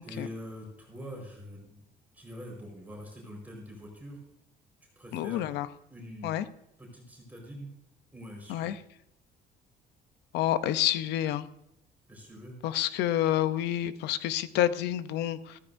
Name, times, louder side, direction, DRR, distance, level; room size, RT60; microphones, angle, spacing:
voice 1, 0.0-1.8 2.1-4.2 5.0-5.5 5.9-6.3 6.8-7.7 8.1-8.7 12.1-12.6, equal, 10° right, -1 dB, 4.5 m, -44 dB
voice 2, 5.1-5.7 6.2-6.4 8.5-8.7 10.3-11.5 12.6-15.6, left 12 dB, 85° left, 14 dB, 0.7 m, -28 dB
14.5 x 13.5 x 2.6 m, 0.84 s
cardioid pair, 110°, 17 cm